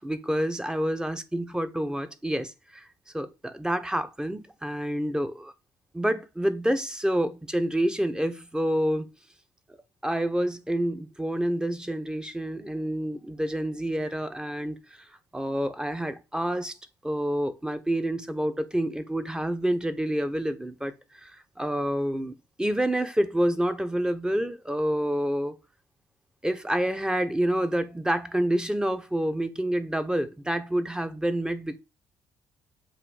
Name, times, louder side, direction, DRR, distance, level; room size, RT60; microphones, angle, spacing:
voice 1, 0.0-2.9 3.1-5.5 5.9-9.1 10.0-14.8 15.3-16.7 17.0-25.6 26.4-31.8, right 1 dB, 10° right, 1.0 m, -28 dB
7.6 x 2.7 x 4.9 m
supercardioid pair, 60°, 10 cm